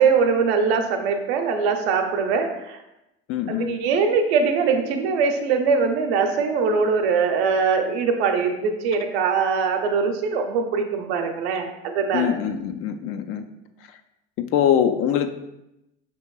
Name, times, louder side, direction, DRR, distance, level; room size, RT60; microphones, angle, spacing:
voice 1, 0.0-2.8 3.5-12.4, right 5 dB, 70° right, 4 dB, 0.7 m, -22 dB
voice 2, 3.3-3.7 12.1-13.4 14.4-15.3, left 9 dB, 45° left, 8 dB, 0.4 m, -23 dB
5.7 x 2.9 x 2.3 m, 0.89 s
hypercardioid pair, 75°, 32 cm